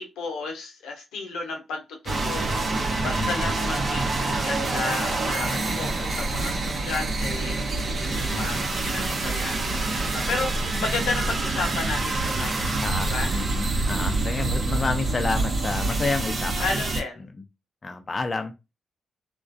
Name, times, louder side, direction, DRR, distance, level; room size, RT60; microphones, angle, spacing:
voice 1, 0.0-13.3 16.0-16.2 16.6-17.2, left 3 dB, 80° left, 2 dB, 0.7 m, -33 dB
sound 1, 2.1-17.0, right 2 dB, 55° right, 0.7 m, -26 dB
voice 2, 3.2-3.5 8.3-8.6 12.8-16.7 17.2-17.3 17.8-18.5, left 3 dB, 40° left, 5 dB, 0.4 m, -30 dB
2.3 x 2.1 x 2.5 m, 0.25 s
supercardioid pair, 45°, 0 cm